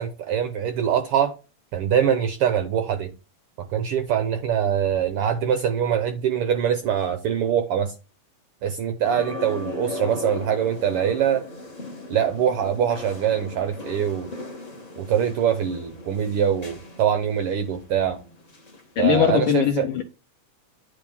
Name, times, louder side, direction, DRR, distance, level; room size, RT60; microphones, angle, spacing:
voice 1, 0.0-1.3 1.7-3.1 3.7-7.9 8.6-11.4 12.1-14.3 15.0-18.2 19.0-19.9, right 9 dB, 80° right, 1.3 m, -23 dB
sound 1, 9.0-18.9 19.2-19.3, left 2 dB, 30° left, 0.7 m, -38 dB
voice 2, 19.0-20.0, left 9 dB, 75° left, 1.2 m, -20 dB
9.6 x 3.4 x 5.4 m
omnidirectional pair, 3.3 m